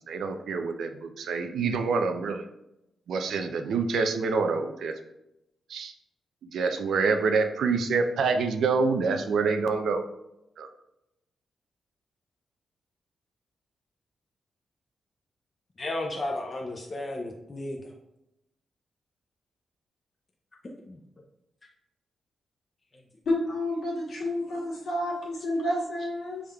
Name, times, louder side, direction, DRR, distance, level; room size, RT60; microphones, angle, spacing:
voice 1, 0.1-2.4 3.1-4.9 5.7-5.9 6.5-10.0 10.6-10.7, right 4 dB, 80° right, 6 dB, 0.4 m, -26 dB
voice 2, 15.8-17.8 20.8-21.0, left 2 dB, 25° left, 0 dB, 0.4 m, -33 dB
voice 3, 23.2-26.4, left 1 dB, 65° left, -6 dB, 1.5 m, -29 dB
6.3 x 3.6 x 2.2 m, 0.88 s
wide cardioid pair, 165°, 0 cm